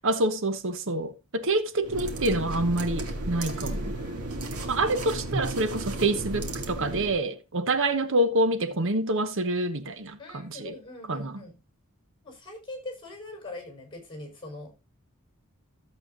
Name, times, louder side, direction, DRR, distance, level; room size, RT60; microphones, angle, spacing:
voice 1, 0.0-3.9 4.7-10.7 11.1-11.4, right 2 dB, 60° right, 1.1 m, -27 dB
sound 1, 1.8-7.2, right 1 dB, 85° right, 2.1 m, -34 dB
voice 2, 3.3-4.3 10.2-11.6 12.2-14.7, left 2 dB, 25° left, 4.9 m, -42 dB
14.0 x 7.9 x 2.6 m
head